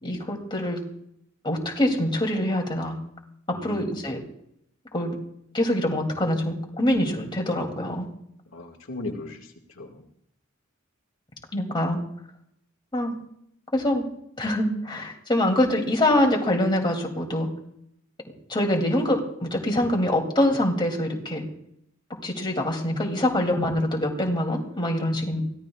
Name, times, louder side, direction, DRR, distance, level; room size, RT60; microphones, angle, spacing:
voice 1, 0.0-0.8 1.4-3.0 3.6-4.2 4.9-5.2 5.5-8.1 11.5-12.0 12.9-13.1 13.7-14.0 14.4-17.5 18.5-21.4 22.2-25.4, left 1 dB, 25° left, 1 dB, 2.7 m, -24 dB
voice 2, 3.5-3.9 8.5-10.1 25.3-25.4, left 2 dB, 75° left, 1 dB, 2.0 m, -37 dB
23.5 x 16.5 x 2.4 m, 0.73 s
head